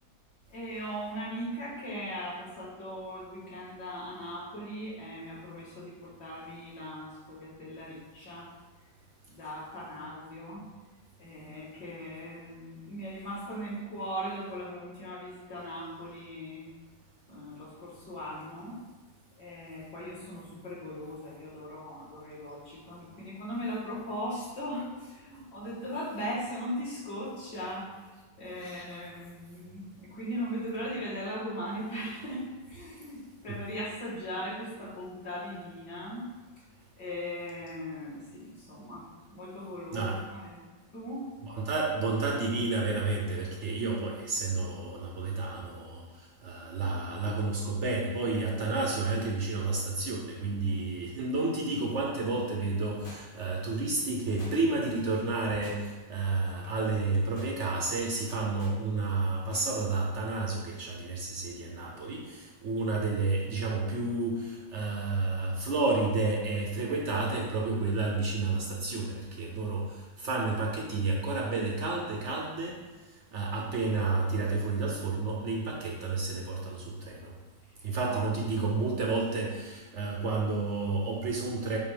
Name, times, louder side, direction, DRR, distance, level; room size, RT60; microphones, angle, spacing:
voice 1, 0.5-8.5 9.3-10.6 11.2-16.7 17.3-18.8 19.4-28.1 28.4-36.3 36.6-36.7 37.0-40.6 40.9-41.3 77.8-78.2, equal, 55° left, -8 dB, 2.5 m, -39 dB
voice 2, 39.9-40.2 41.5-46.0 46.4-72.8 73.3-77.3 77.8-81.8, right 3 dB, 60° right, -1 dB, 0.7 m, -31 dB
sound 1, 53.0-53.6 54.4-54.9 55.6-56.1 56.5-56.7 57.1-57.6 58.3-58.8 59.5-59.7 60.0-60.1, left 1 dB, 35° left, 0.9 m, -50 dB
7.4 x 2.8 x 5.0 m, 1.3 s
omnidirectional pair, 2.1 m